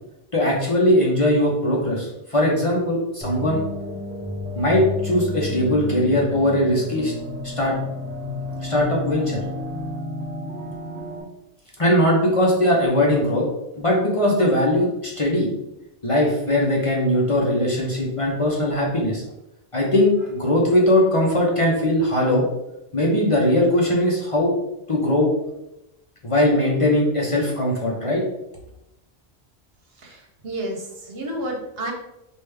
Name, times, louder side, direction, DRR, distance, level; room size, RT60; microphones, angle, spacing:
voice 1, 0.3-3.6 4.5-7.1 7.6-7.7 8.6-9.4 11.8-13.4 13.8-15.5 16.0-19.2 19.7-22.4 22.9-24.5 24.9-25.3 26.2-28.2, left 1 dB, 30° left, -4 dB, 0.9 m, -20 dB
sound 1, 3.2-11.2, left 2 dB, ahead, 1.0 m, -31 dB
voice 2, 30.0-31.9, right 1 dB, 65° right, 1 dB, 1.1 m, -31 dB
5.1 x 2.7 x 3.3 m, 0.89 s
omnidirectional pair, 1.1 m